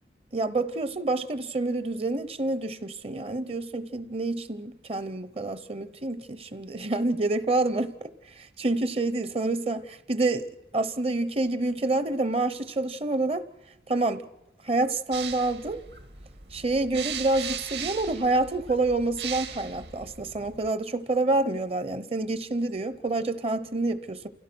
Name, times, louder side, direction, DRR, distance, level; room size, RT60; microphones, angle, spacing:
voice 1, 0.3-7.9 8.6-10.5 10.7-13.4 13.9-14.3 14.6-15.8 16.5-24.3, right 2 dB, 30° right, 0.7 m, -27 dB
sound 1, 15.1-20.7, right 8 dB, 65° right, 1.8 m, -38 dB
28.0 x 16.5 x 6.1 m
head